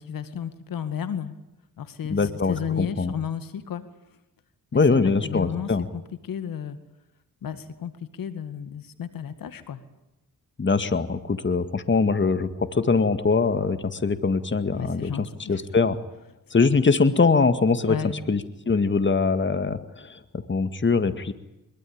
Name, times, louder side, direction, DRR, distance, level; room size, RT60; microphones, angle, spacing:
voice 1, 0.0-1.4 1.8-3.8 4.7-6.8 7.4-9.8 14.7-15.6 17.9-18.2, left 8 dB, 85° left, 11 dB, 2.1 m, -33 dB
voice 2, 2.1-3.1 4.7-5.9 10.6-16.0 16.5-18.0 18.3-21.3, left 4 dB, 35° left, 11 dB, 2.0 m, -23 dB
23.5 x 23.0 x 8.8 m, 0.93 s
cardioid pair, 75°, 33 cm